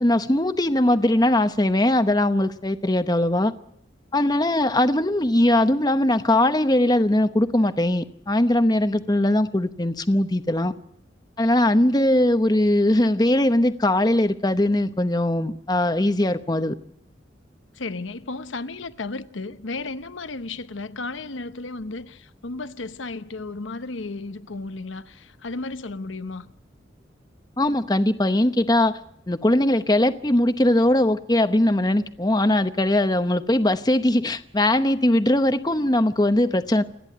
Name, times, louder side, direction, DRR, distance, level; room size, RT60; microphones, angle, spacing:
voice 1, 0.0-3.5 4.1-10.7 11.4-16.8 27.6-29.0 29.3-36.8, left 1 dB, 20° left, 0.9 m, -20 dB
voice 2, 17.7-26.5, left 3 dB, 80° left, 1.0 m, -34 dB
28.5 x 10.5 x 9.3 m
head